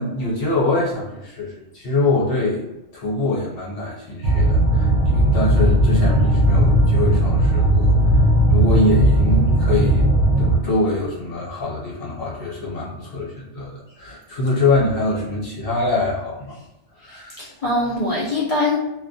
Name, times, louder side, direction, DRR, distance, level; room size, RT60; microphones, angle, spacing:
voice 1, 0.0-2.6 2.9-10.1 10.4-16.5 16.9-17.4, left 2 dB, 55° left, -5 dB, 0.9 m, -24 dB
sound 1, 4.2-10.6, right 1 dB, 75° right, 0.9 m, -16 dB
voice 2, 17.1-18.8, left 2 dB, 75° left, -6 dB, 0.3 m, -23 dB
2.3 x 2.1 x 2.6 m, 0.94 s
omnidirectional pair, 1.2 m